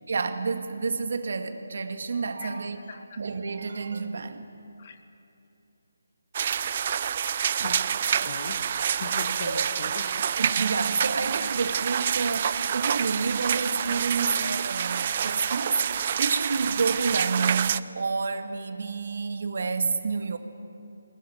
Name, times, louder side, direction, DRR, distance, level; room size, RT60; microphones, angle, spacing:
voice 1, 0.1-4.5 7.6-7.7 8.7-9.0 9.4-9.7 10.4-20.4, right 4 dB, 60° right, 8 dB, 1.9 m, -29 dB
voice 2, 2.4-3.2 4.8-5.0 7.6-10.2 11.4-11.5, left 5 dB, 40° left, 8 dB, 1.8 m, -41 dB
sound 1, 6.3-17.8, right 8 dB, 40° right, 0.5 m, -27 dB
21.5 x 20.5 x 9.5 m, 2.8 s
figure-of-eight pair, 150°, 0 cm